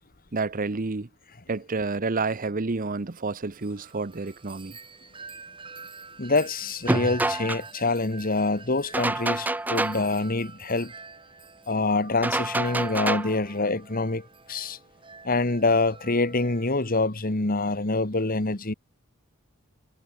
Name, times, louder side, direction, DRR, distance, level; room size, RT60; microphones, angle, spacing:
voice 1, 0.3-1.1 1.5-4.8, right 3 dB, 40° right, 0.8 m, -29 dB
Wind chime, 3.6-17.0, right 4 dB, 25° right, 2.6 m, -46 dB
voice 2, 6.2-10.9 11.7-14.8 15.2-18.7, left 3 dB, 40° left, 1.7 m, -26 dB
sound 1, 6.9-7.6 8.9-10.1 12.2-13.4, right 2 dB, 10° right, 0.4 m, -26 dB
head